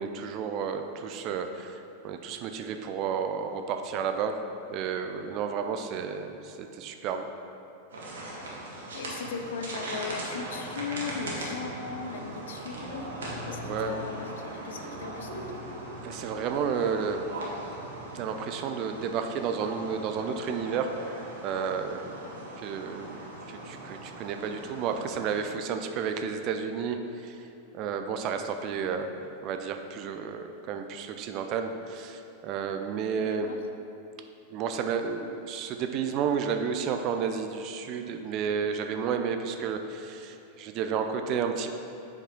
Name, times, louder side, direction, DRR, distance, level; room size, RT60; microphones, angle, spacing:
voice 1, 0.0-4.4 4.7-7.3 13.6-14.0 16.0-17.2 18.1-20.9 21.4-22.1 22.6-27.5 27.7-29.1 29.4-33.5 34.5-41.7, right 6 dB, 40° right, 7 dB, 0.5 m, -31 dB
sound 1, 7.9-25.5, right 1 dB, 65° right, 1.7 m, -39 dB
voice 2, 8.9-13.1 13.4-15.8 33.2-33.6, left 5 dB, 60° left, 5 dB, 0.6 m, -38 dB
7.8 x 6.0 x 4.5 m, 2.7 s
figure-of-eight pair, 90°, 0 cm